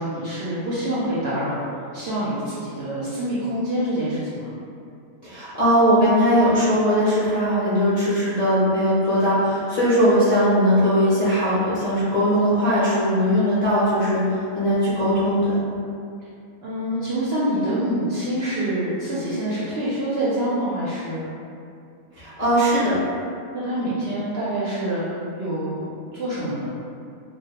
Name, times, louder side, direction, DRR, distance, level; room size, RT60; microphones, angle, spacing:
voice 1, 0.0-1.6 1.9-4.5 16.6-21.3 23.5-25.0 25.4-25.9 26.1-26.7, right 1 dB, 65° right, -10 dB, 0.6 m, -26 dB
voice 2, 5.2-14.2 14.5-15.6 22.2-23.0, equal, 45° left, -14 dB, 0.5 m, -19 dB
2.2 x 2.1 x 2.8 m, 2.4 s
omnidirectional pair, 1.4 m